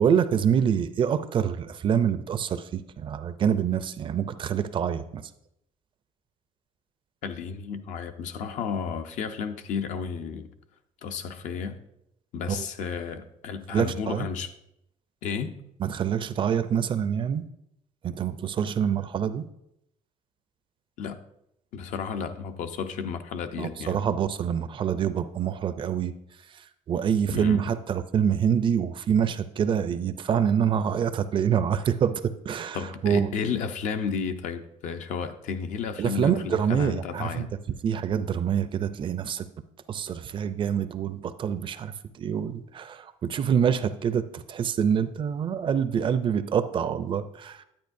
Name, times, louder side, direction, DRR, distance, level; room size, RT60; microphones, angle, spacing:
voice 1, 0.0-5.2 12.5-12.6 13.7-14.3 15.8-17.4 18.0-19.5 23.5-26.1 26.5-32.8 33.0-33.3 36.0-37.5 37.8-39.5 39.9-47.6, right 8 dB, 40° right, 0.4 m, -26 dB
voice 2, 7.2-10.5 11.0-11.8 12.3-14.5 15.2-15.6 21.0-21.2 21.7-24.0 27.3-27.7 32.7-37.5, left 6 dB, 70° left, 0.7 m, -32 dB
10.5 x 8.8 x 2.6 m
cardioid pair, 135°, 13 cm